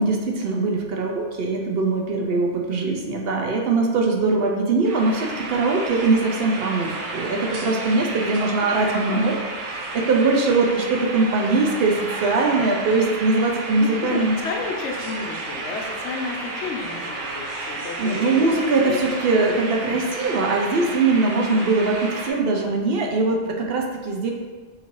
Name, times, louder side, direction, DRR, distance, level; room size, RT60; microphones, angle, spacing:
voice 1, 0.0-14.4 18.0-24.3, right 3 dB, 60° right, 1 dB, 0.7 m, -21 dB
sound 1, 4.9-22.3, right 2 dB, 85° right, 1.1 m, -32 dB
voice 2, 13.7-18.6 18.8-19.1 19.9-20.0 20.8-20.9 21.5-21.7 22.4-22.8 23.4-23.5, left 4 dB, 65° left, 1 dB, 1.0 m, -33 dB
6.4 x 2.7 x 3.0 m, 1.4 s
omnidirectional pair, 1.3 m